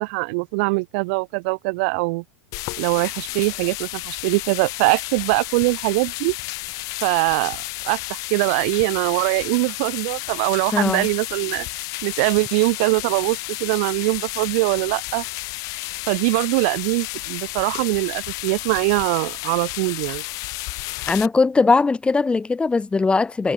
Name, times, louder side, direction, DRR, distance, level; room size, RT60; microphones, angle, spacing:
voice 1, 0.0-2.2 2.8-6.3 7.0-11.7 12.0-15.2 16.1-20.2, right 30 dB, 55° right, 4.9 m, -22 dB
sound 1, 2.5-21.3, left 24 dB, 50° left, 6.8 m, -32 dB
voice 2, 10.7-11.1 21.1-23.5, left 4 dB, 15° left, 3.0 m, -19 dB
hypercardioid pair, 95°, 8 cm